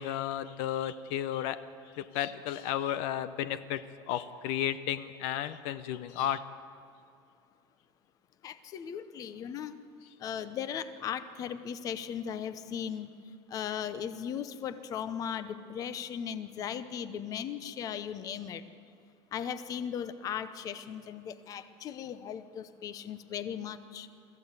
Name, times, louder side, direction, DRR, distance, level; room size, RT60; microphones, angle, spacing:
voice 1, 0.0-1.6 1.9-6.4, left 11 dB, 65° left, 13 dB, 0.8 m, -33 dB
voice 2, 8.4-9.8 10.2-13.1 13.5-18.6 19.3-24.1, left 8 dB, 35° left, 13 dB, 0.9 m, -37 dB
24.0 x 15.0 x 8.2 m, 2.4 s
cardioid pair, 160°, 11 cm